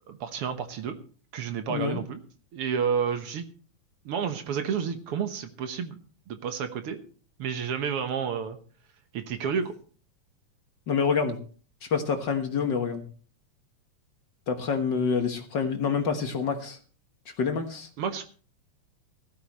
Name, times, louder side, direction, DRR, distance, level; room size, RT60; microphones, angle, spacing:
voice 1, 0.1-1.0 1.3-2.2 2.5-3.5 4.1-6.0 6.3-7.0 7.4-8.6 9.1-9.7 18.0-18.2, right 7 dB, 60° right, 8 dB, 1.8 m, -30 dB
voice 2, 1.7-2.0 10.9-11.4 11.8-13.0 14.5-16.8 17.4-17.9, left 5 dB, 50° left, 5 dB, 1.5 m, -27 dB
16.5 x 14.0 x 3.1 m, 0.41 s
omnidirectional pair, 3.5 m